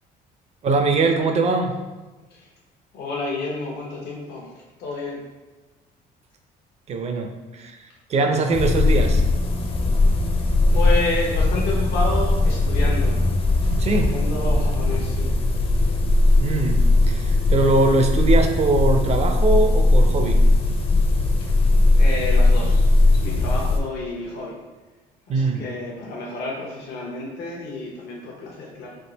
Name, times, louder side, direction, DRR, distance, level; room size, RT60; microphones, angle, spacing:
voice 1, 0.6-1.8 6.9-7.8 8.1-9.2 13.8-14.2 16.4-16.8 17.1-20.4 25.3-25.6, right 3 dB, 40° right, 5 dB, 0.5 m, -21 dB
voice 2, 2.9-4.5 4.8-5.2 10.7-13.2 13.8-15.3 21.9-24.6 25.3-29.0, left 2 dB, 75° left, -2 dB, 0.9 m, -30 dB
sound 1, 8.5-23.8, left 2 dB, 35° left, 0.5 m, -19 dB
3.6 x 2.4 x 3.9 m, 1.2 s
cardioid pair, 110°, 17 cm